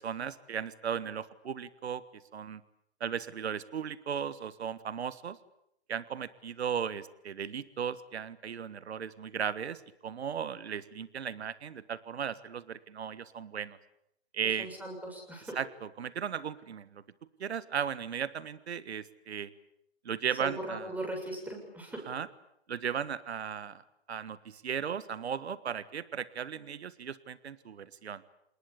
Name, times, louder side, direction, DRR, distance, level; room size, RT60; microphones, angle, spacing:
voice 1, 0.0-2.0 2.3-2.6 3.0-5.4 5.9-13.8 14.3-14.7 15.5-17.0 17.4-19.5 20.0-20.9 22.1-22.3 22.7-23.8 24.1-28.2, right 7 dB, 75° right, 16 dB, 1.6 m, -36 dB
voice 2, 14.6-15.6 20.4-22.0, right 1 dB, 5° right, 2 dB, 7.0 m, -39 dB
27.5 x 20.5 x 8.7 m, 0.75 s
hypercardioid pair, 130°, 33 cm